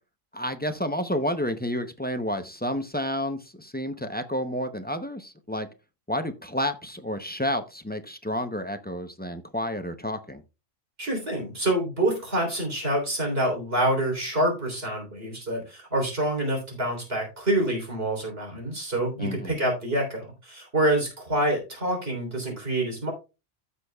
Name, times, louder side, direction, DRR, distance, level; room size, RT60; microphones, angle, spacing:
voice 1, 0.3-5.7 6.1-10.4 19.2-19.5, left 1 dB, 15° left, 8 dB, 0.4 m, -30 dB
voice 2, 11.0-23.1, right 1 dB, 50° right, 1 dB, 3.7 m, -27 dB
15.5 x 6.3 x 2.3 m, 0.28 s
omnidirectional pair, 1.3 m